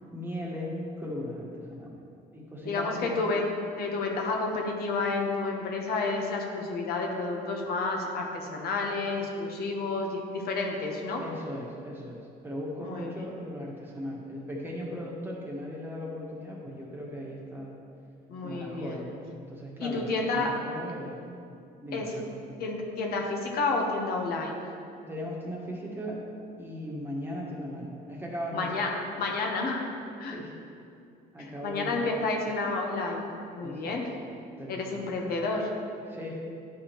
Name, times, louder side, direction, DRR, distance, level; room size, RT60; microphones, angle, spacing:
voice 1, 0.1-2.0 2.3-3.2 11.2-17.8 18.4-21.2 21.8-22.4 25.1-26.2 26.6-28.7 30.3-30.5 31.3-32.3 33.6-34.0 34.6-35.3 36.1-36.4, equal, 15° right, -3 dB, 1.4 m, -38 dB
voice 2, 2.6-3.5 3.8-11.2 12.8-13.2 18.3-19.0 19.8-20.6 21.9-22.2 22.6-24.6 28.5-29.9 30.2-30.4 31.4-33.3 33.5-34.1 34.7-35.7, left 3 dB, 65° left, 1 dB, 1.1 m, -30 dB
10.5 x 4.9 x 3.0 m, 2.5 s
cardioid pair, 110°, 17 cm